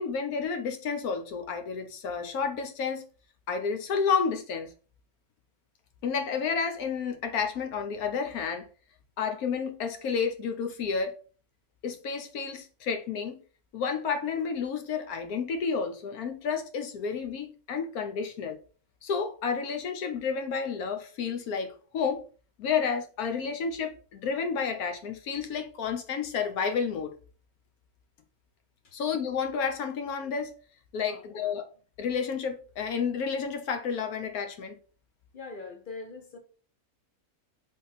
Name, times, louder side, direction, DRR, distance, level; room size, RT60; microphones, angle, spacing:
voice 1, 0.0-3.0 3.5-4.7 6.0-8.7 9.2-11.1 11.8-13.4 13.7-18.6 19.0-22.2 22.6-27.2 28.9-30.5 30.9-31.6 32.0-34.8, left 6 dB, 80° left, 1.2 m, -31 dB
voice 2, 31.0-31.5 35.3-36.4, left 3 dB, 40° left, 0.8 m, -43 dB
3.6 x 3.6 x 4.1 m
omnidirectional pair, 1.6 m